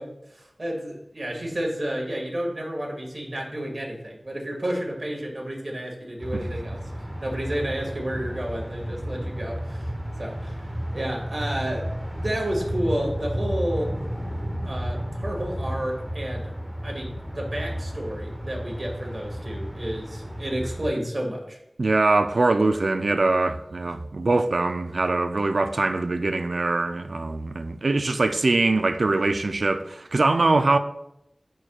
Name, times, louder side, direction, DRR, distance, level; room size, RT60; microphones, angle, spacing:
voice 1, 0.0-6.8 7.2-9.9 10.2-10.6 10.9-11.9 12.2-13.9 14.6-16.5 16.8-21.6 23.8-23.9, right 1 dB, 50° right, 1.9 m, -31 dB
sound 1, 6.2-20.9, equal, 10° right, 1.0 m, -32 dB
voice 2, 21.8-30.8, right 3 dB, 80° right, 0.4 m, -22 dB
10.5 x 4.5 x 2.3 m
wide cardioid pair, 60°, 0 cm